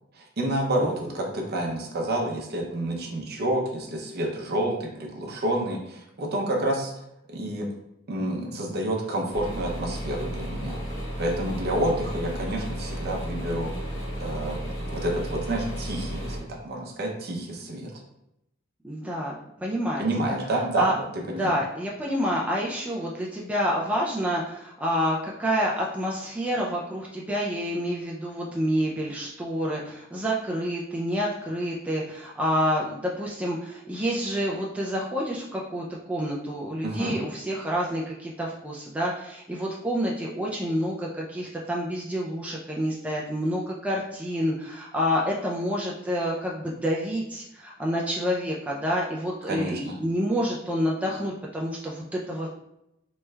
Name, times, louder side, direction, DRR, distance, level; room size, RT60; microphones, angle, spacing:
voice 1, 0.2-6.9 7.3-7.7 8.1-10.8 11.2-13.7 14.2-14.6 14.9-17.9 20.0-21.5 36.8-37.2 49.5-50.0, right 1 dB, 50° right, 1 dB, 0.6 m, -29 dB
sound 1, 9.3-16.4, equal, 65° left, 1.0 m, -33 dB
voice 2, 18.8-20.4 20.8-20.9 21.3-52.5, equal, 5° right, -3 dB, 0.3 m, -28 dB
3.0 x 2.3 x 3.2 m, 0.83 s
head